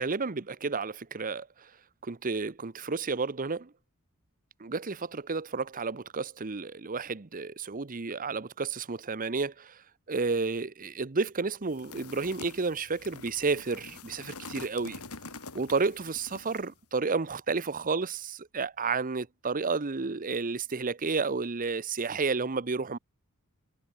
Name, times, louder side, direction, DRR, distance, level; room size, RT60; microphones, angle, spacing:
voice 1, 0.0-1.5 2.0-3.7 4.6-9.8 10.1-15.0 15.5-23.0, right 4 dB, 40° right, 0.9 m, -31 dB
sound 1, 11.7-16.7, left 4 dB, 85° left, 4.2 m, -46 dB
head